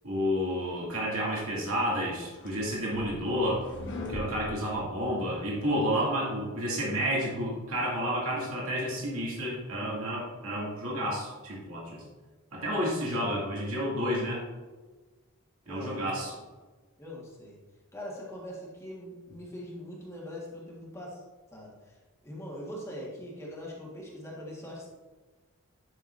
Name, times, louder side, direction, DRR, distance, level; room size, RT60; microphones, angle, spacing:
voice 1, 0.0-3.6 4.1-12.0 12.5-14.4 15.7-16.3, equal, 70° right, -5 dB, 2.4 m, -30 dB
sound 1, 2.3-5.5, left 1 dB, 55° left, 1.3 m, -42 dB
voice 2, 15.6-16.0 17.0-17.6 17.9-21.2 21.5-22.0 22.2-24.9, equal, 15° left, -4 dB, 1.6 m, -42 dB
10.5 x 6.0 x 2.6 m, 1.3 s
head